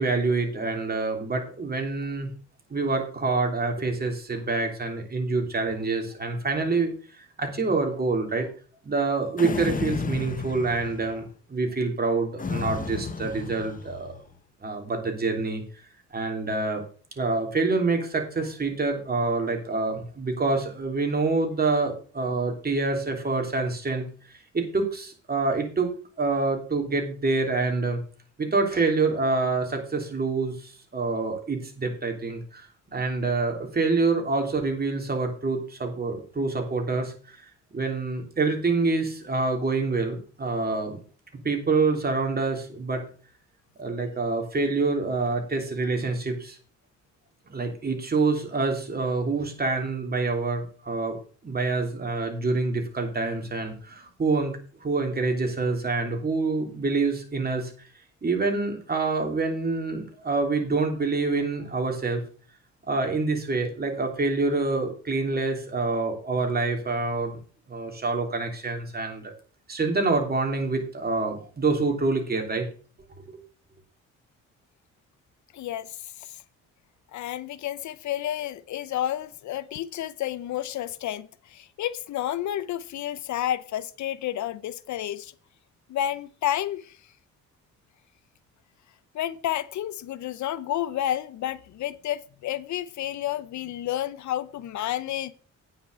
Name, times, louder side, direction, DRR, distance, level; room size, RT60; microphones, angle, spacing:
voice 1, 0.0-2.3 2.7-6.9 7.4-8.5 8.8-14.2 14.6-15.6 16.1-16.8 17.2-24.0 24.5-25.9 26.2-28.0 28.4-37.1 37.7-41.0 41.4-43.0 43.8-46.6 47.5-51.2 51.4-54.5 54.8-57.7 58.2-62.2 62.9-67.4 67.7-69.3 69.7-72.6, right 3 dB, 30° right, 3.2 m, -26 dB
sound 1, 9.4-11.2 12.4-14.2, left 5 dB, 25° left, 0.9 m, -33 dB
voice 2, 75.5-75.9 76.2-76.4 77.1-85.3 85.9-86.9 89.1-95.3, left 12 dB, 70° left, 0.7 m, -30 dB
9.2 x 5.8 x 6.8 m
cardioid pair, 90°, 30 cm